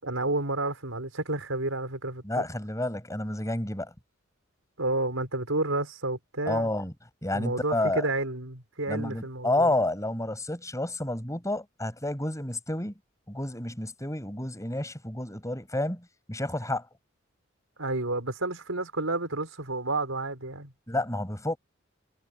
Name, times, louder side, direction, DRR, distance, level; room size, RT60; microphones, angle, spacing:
voice 1, 0.0-2.4 4.8-6.7 7.3-9.7 17.8-20.7, right 2 dB, 85° right, 5.2 m, -30 dB
voice 2, 2.2-3.9 6.5-6.9 7.2-8.1 8.9-12.9 13.3-16.8 20.9-21.6, left 1 dB, 15° left, 7.1 m, -30 dB
head